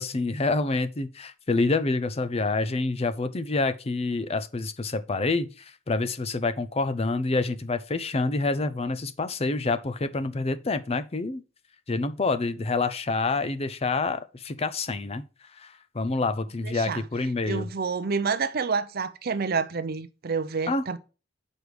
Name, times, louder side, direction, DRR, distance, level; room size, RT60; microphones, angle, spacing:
voice 1, 0.0-11.4 11.9-15.2 15.6-17.7 20.7-20.8, left 3 dB, 30° left, 0.5 m, -27 dB
voice 2, 16.6-17.1 17.4-21.0, right 5 dB, 50° right, 0.6 m, -28 dB
6.4 x 4.8 x 5.1 m
head